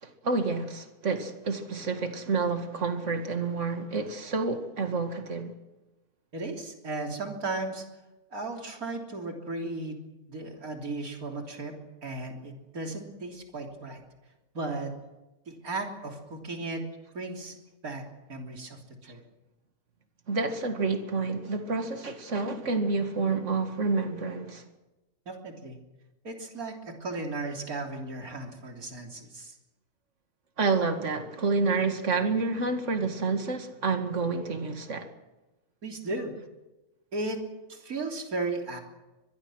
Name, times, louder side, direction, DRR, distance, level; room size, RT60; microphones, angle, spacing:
voice 1, 0.0-5.5 20.3-24.6 30.6-35.1, right 4 dB, 50° right, 2.4 m, -29 dB
voice 2, 6.3-7.8 8.3-10.0 10.3-11.7 12.0-14.0 14.5-14.9 15.5-16.8 17.1-17.5 17.8-18.8 19.1-19.2 25.3-25.8 26.2-29.5 35.8-36.3 37.1-37.4 37.7-38.8, right 2 dB, 70° right, 3.8 m, -35 dB
24.5 x 21.5 x 6.3 m
omnidirectional pair, 1.6 m